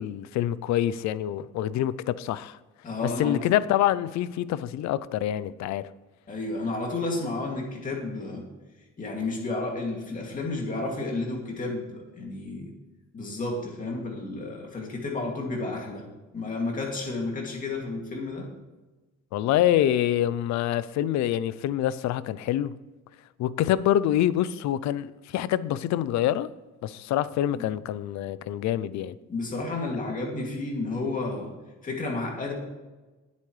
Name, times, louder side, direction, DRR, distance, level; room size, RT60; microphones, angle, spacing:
voice 1, 0.0-2.6 3.2-5.8 19.3-22.7 23.4-26.5 26.8-29.1, left 12 dB, 65° left, 0.6 m, -26 dB
voice 2, 2.8-3.4 6.3-8.4 9.0-12.7 13.1-16.1 16.3-18.5 27.5-27.8 29.3-31.5 31.8-32.5, left 2 dB, 25° left, 2.5 m, -31 dB
18.5 x 8.3 x 3.3 m
cardioid pair, 165°, 31 cm